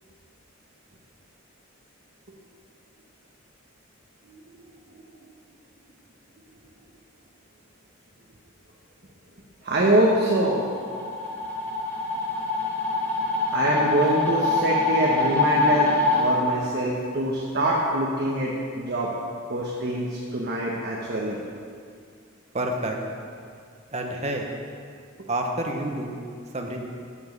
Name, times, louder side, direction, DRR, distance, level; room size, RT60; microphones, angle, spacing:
voice 1, 9.6-10.7 11.0-11.1 13.5-15.9 16.2-19.1 19.5-21.4, right 1 dB, 50° right, -4 dB, 1.2 m, -24 dB
sound 1, 10.3-16.2, left 3 dB, 10° left, 2.2 m, -24 dB
voice 2, 22.5-23.0 23.9-24.5 25.3-26.2 26.5-26.8, right 1 dB, 35° right, 1 dB, 1.1 m, -28 dB
11.5 x 7.3 x 5.4 m, 2.2 s
head